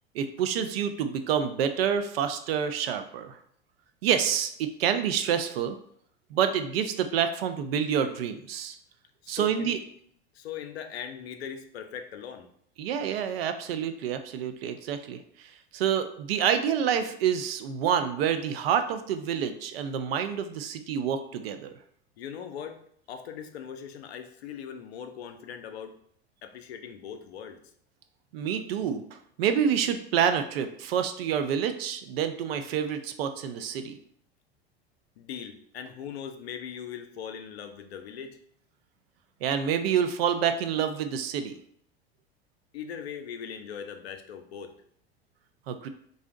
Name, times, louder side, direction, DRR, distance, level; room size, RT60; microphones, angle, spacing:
voice 1, 0.1-3.4 4.0-5.8 6.3-8.8 9.3-9.8 12.8-21.7 28.3-33.9 39.4-41.5 45.7-45.9, right 8 dB, 65° right, 9 dB, 0.4 m, -28 dB
voice 2, 9.2-9.8 10.3-12.5 22.2-22.8 23.1-25.9 26.4-27.6 35.2-38.4 42.7-44.7, left 8 dB, 70° left, 6 dB, 0.5 m, -40 dB
2.6 x 2.0 x 3.7 m, 0.65 s
figure-of-eight pair, 80°, 32 cm